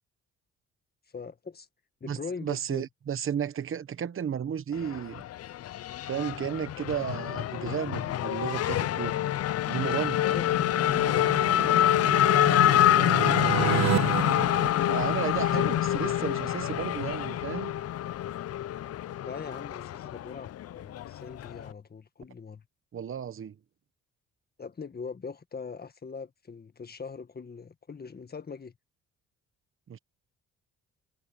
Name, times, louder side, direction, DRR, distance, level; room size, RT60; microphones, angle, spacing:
voice 1, 1.1-1.7 2.0-2.9 10.2-11.8 12.2-13.6 19.2-22.6 24.6-28.7, left 5 dB, 30° left, 1.7 m, -42 dB
voice 2, 2.1-5.2 6.0-9.2 9.7-10.2 14.9-17.7 22.9-23.5 29.9-30.0, right 8 dB, 45° right, 1.1 m, -33 dB
Race car auto racing / Accelerating revving vroom, 4.7-21.7, left 12 dB, 55° left, 0.5 m, -26 dB
sound 1, 10.1-15.7, right 14 dB, 65° right, 0.6 m, -33 dB
cardioid pair, 90°, 30 cm